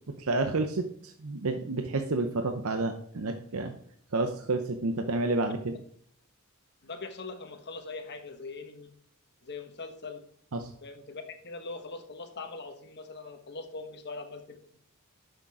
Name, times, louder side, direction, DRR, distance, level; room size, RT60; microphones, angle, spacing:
voice 1, 0.2-3.7 4.1-5.8 10.5-10.7, right 2 dB, 70° right, 6 dB, 0.8 m, -30 dB
voice 2, 6.8-8.9 9.4-10.2 10.8-14.8, left 3 dB, 50° left, 6 dB, 1.2 m, -42 dB
10.0 x 6.6 x 4.9 m, 0.63 s
head